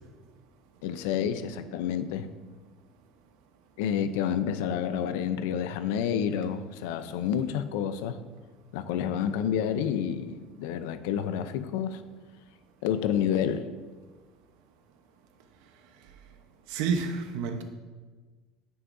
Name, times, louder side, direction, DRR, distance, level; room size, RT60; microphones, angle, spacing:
voice 1, 0.8-2.3 3.8-8.2 8.7-12.0 12.8-13.6, left 8 dB, 90° left, 11 dB, 0.6 m, -29 dB
voice 2, 16.7-17.6, right 5 dB, 70° right, 6 dB, 1.0 m, -29 dB
9.5 x 9.5 x 2.7 m, 1.4 s
cardioid pair, 175°, 0 cm